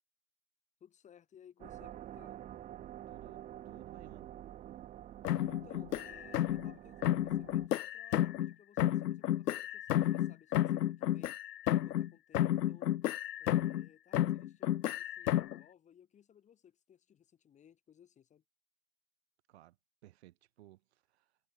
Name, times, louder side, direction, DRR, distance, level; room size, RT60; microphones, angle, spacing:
voice 1, 0.8-2.4 5.4-11.3 11.7-12.9 13.4-18.4, left 9 dB, 15° left, 7.1 m, -61 dB
sound 1, 1.6-7.7, right 12 dB, 15° right, 2.1 m, -48 dB
voice 2, 3.1-4.3 19.5-19.8 20.0-21.4, right 15 dB, 40° right, 3.6 m, -58 dB
sound 2, 5.2-6.7 7.0-8.5 8.8-12.1 12.3-13.9 14.1-15.6, left 12 dB, 80° left, 0.6 m, -31 dB
hypercardioid pair, 140°, 48 cm